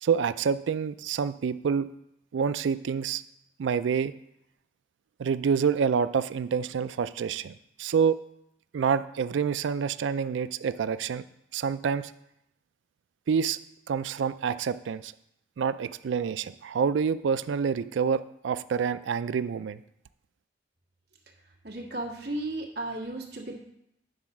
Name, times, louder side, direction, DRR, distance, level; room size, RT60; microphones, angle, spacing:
voice 1, 0.0-1.9 2.3-3.2 3.6-4.1 5.2-7.5 7.8-8.2 8.7-11.2 11.5-12.1 13.3-13.6 13.9-15.1 15.6-19.8, right 6 dB, 85° right, 14 dB, 0.4 m, -27 dB
voice 2, 21.6-23.6, right 2 dB, 60° right, 0 dB, 1.5 m, -34 dB
9.5 x 4.0 x 5.9 m, 0.80 s
head